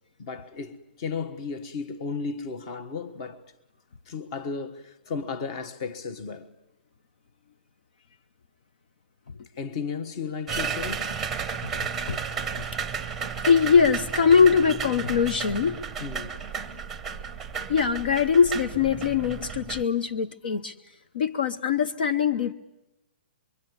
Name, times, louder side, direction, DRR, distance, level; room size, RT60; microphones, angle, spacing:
voice 1, 0.2-3.4 4.1-6.5 9.6-11.1 16.0-16.4 20.4-20.6, left 5 dB, 30° left, 1.4 m, -34 dB
sound 1, 10.5-19.8, right 6 dB, 5° right, 1.0 m, -33 dB
voice 2, 13.4-15.8 17.7-20.7 21.1-22.5, left 6 dB, 60° left, 1.1 m, -22 dB
25.0 x 24.0 x 9.6 m
hypercardioid pair, 170°, 6 cm